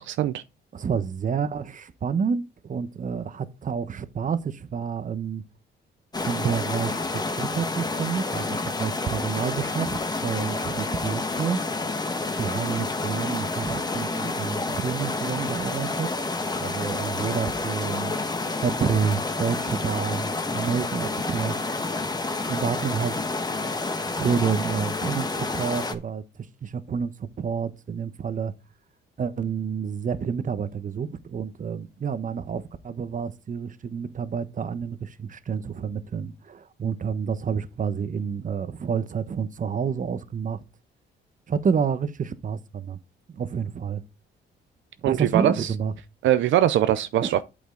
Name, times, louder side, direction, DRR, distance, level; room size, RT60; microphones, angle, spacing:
voice 1, 0.1-0.4 45.0-45.7 46.2-47.4, right 12 dB, 75° right, 0.5 m, -22 dB
voice 2, 0.7-5.4 6.2-11.6 12.4-16.1 16.5-18.1 18.6-21.6 22.1-22.2 22.5-23.1 24.1-26.2 26.6-28.5 29.2-40.6 41.5-43.0 43.3-44.0 45.0-45.9 47.2-47.4, right 6 dB, 40° right, 1.0 m, -29 dB
sound 1, 6.1-25.9, left 3 dB, 20° left, 1.2 m, -29 dB
8.5 x 6.9 x 3.9 m
cardioid pair, 90°, 20 cm